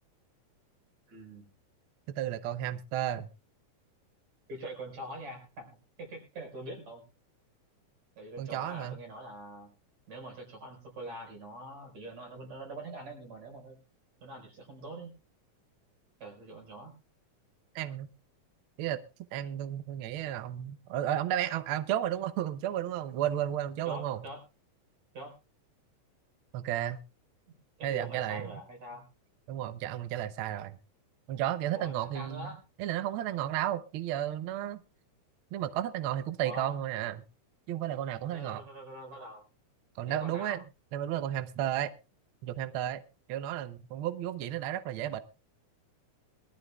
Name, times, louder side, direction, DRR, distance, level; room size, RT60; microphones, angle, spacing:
voice 1, 1.1-1.5 4.5-7.0 8.2-9.7 10.1-13.8 14.2-15.1 16.2-16.9 23.9-24.4 25.1-25.3 27.5-29.0 31.7-32.6 36.4-36.8 38.3-39.4 40.1-40.6, right 1 dB, 60° right, 2 dB, 5.9 m, -44 dB
voice 2, 2.1-3.3 8.4-9.0 17.7-18.1 18.8-19.0 19.3-24.3 26.5-27.0 27.8-28.5 29.5-30.8 31.3-32.5 32.8-34.8 35.5-37.2 37.7-38.6 40.0-40.6 40.9-41.9 42.4-43.0 43.3-45.2, right 12 dB, 90° right, 12 dB, 1.1 m, -33 dB
22.5 x 13.5 x 2.3 m, 0.30 s
omnidirectional pair, 3.5 m